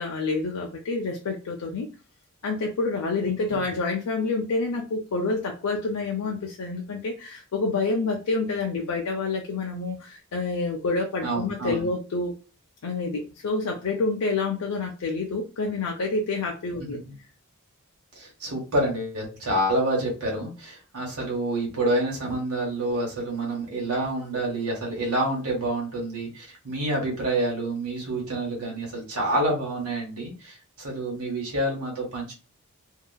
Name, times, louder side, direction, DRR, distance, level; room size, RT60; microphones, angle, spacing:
voice 1, 0.0-1.9 2.4-12.3 12.8-17.0, left 3 dB, 90° left, 0 dB, 0.5 m, -28 dB
voice 2, 11.2-11.9 17.0-17.1 18.1-32.3, right 1 dB, 85° right, -2 dB, 1.2 m, -28 dB
2.8 x 2.4 x 2.2 m, 0.34 s
head